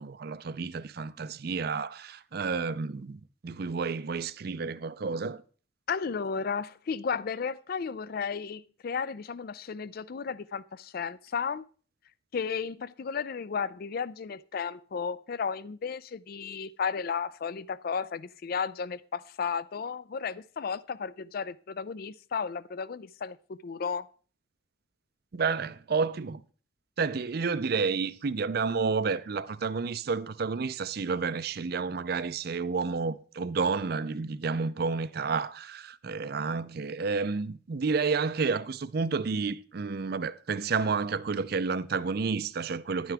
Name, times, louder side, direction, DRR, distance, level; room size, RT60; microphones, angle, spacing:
voice 1, 0.0-5.4 25.3-26.4 27.0-43.1, right 4 dB, 50° right, 0.5 m, -30 dB
voice 2, 5.9-11.6 12.3-24.1, left 6 dB, 50° left, 0.4 m, -34 dB
11.0 x 9.3 x 3.4 m
head